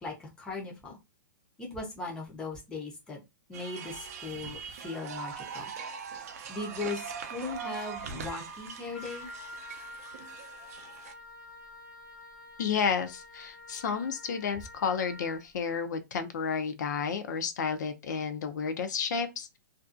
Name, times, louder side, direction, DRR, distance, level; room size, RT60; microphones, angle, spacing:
voice 1, 0.0-1.0 1.6-3.2 3.5-5.7 6.1-9.3, left 3 dB, 10° left, 0.5 m, -38 dB
sound 1, 3.5-11.1, right 6 dB, 50° right, 0.4 m, -41 dB
Wind instrument woodwind instrument, 8.9-15.5, left 2 dB, 80° left, 1.0 m, -48 dB
voice 2, 12.6-19.6, left 6 dB, 60° left, 0.5 m, -31 dB
2.5 x 2.2 x 2.4 m
hypercardioid pair, 170°, 11 cm